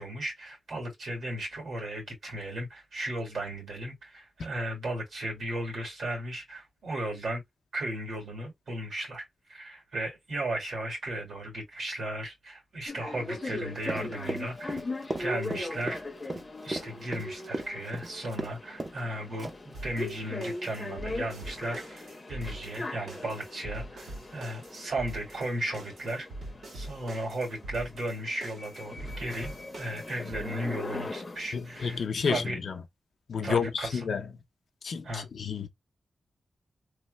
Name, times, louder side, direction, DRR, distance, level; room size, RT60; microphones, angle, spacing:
voice 1, 0.0-7.4 7.7-14.8 15.2-16.0 16.6-26.3 26.7-32.6 33.4-34.1 35.0-35.3, right 1 dB, 65° right, 1.8 m, -35 dB
sound 1, 12.9-32.1, left 2 dB, 25° left, 0.6 m, -40 dB
Run, 13.8-18.5 18.8-19.0 19.4-19.7, right 2 dB, 25° right, 0.5 m, -36 dB
sound 2, 19.7-30.4, right 1 dB, 85° right, 1.7 m, -43 dB
voice 2, 31.5-32.7 33.3-34.3 34.8-35.7, left 6 dB, 65° left, 0.5 m, -30 dB
3.1 x 2.0 x 3.1 m
wide cardioid pair, 180°, 0 cm